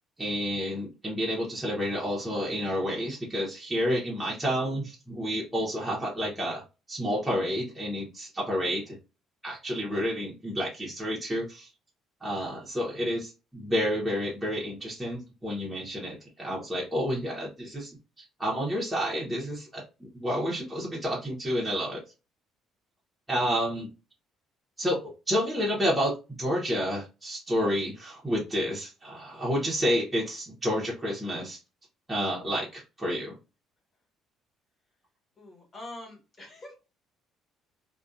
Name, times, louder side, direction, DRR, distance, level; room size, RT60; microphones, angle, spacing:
voice 1, 0.2-9.0 9.4-11.7 12.2-22.0 23.3-23.9 24.8-31.6 32.1-33.4, equal, 5° right, -5 dB, 0.7 m, -30 dB
voice 2, 35.4-36.7, left 2 dB, 25° left, -1 dB, 1.3 m, -44 dB
2.5 x 2.2 x 2.2 m, 0.29 s
cardioid pair, 150°, 0 cm